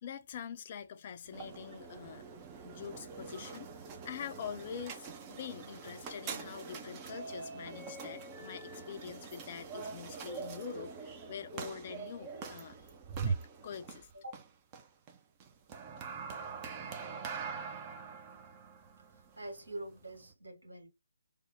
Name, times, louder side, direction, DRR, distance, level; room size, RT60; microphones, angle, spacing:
voice 1, 0.0-2.3 2.6-3.7 4.0-12.8 13.2-14.1, left 8 dB, 30° left, 0.5 m, -45 dB
sound 1, 1.2-20.3, right 5 dB, 20° right, 0.6 m, -43 dB
voice 2, 19.1-20.9, right 1 dB, 65° right, 2.1 m, -45 dB
3.4 x 2.2 x 3.7 m
figure-of-eight pair, 145°, 0 cm